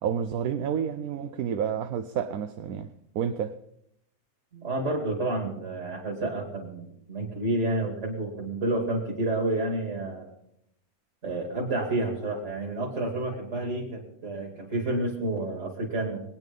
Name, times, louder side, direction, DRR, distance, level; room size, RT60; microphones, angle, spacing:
voice 1, 0.0-2.9 3.1-3.6, right 8 dB, 80° right, 1.2 m, -29 dB
voice 2, 4.5-10.3 11.2-16.2, right 2 dB, 55° right, 2.9 m, -30 dB
21.5 x 9.2 x 5.3 m
omnidirectional pair, 1.5 m